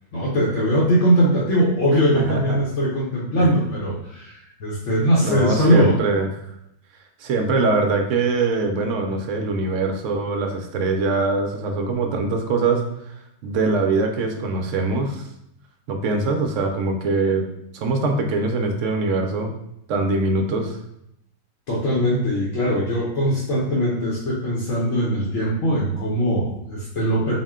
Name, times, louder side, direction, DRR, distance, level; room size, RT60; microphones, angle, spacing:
voice 1, 0.1-6.0 21.7-27.4, equal, 60° left, -6 dB, 1.0 m, -21 dB
voice 2, 2.1-2.6 3.4-3.5 5.2-6.3 7.2-15.3 15.9-17.5 17.7-19.5 19.9-20.8, right 3 dB, 70° right, 4 dB, 0.8 m, -23 dB
4.2 x 2.1 x 3.5 m, 0.79 s
omnidirectional pair, 1.5 m